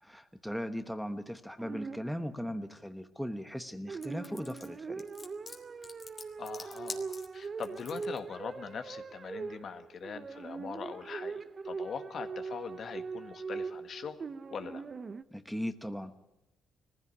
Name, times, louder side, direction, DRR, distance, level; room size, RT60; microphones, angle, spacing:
voice 1, 0.0-5.1 15.3-16.2, equal, ahead, 8 dB, 1.1 m, -38 dB
sound 1, 1.6-2.5 3.9-15.2, right 5 dB, 40° right, 0.8 m, -41 dB
sound 2, 4.0-8.2, left 4 dB, 40° left, 2.5 m, -46 dB
voice 2, 6.4-14.2 14.5-14.8, left 6 dB, 55° left, 8 dB, 1.5 m, -42 dB
19.0 x 15.5 x 9.8 m, 0.96 s
cardioid pair, 90°, 0 cm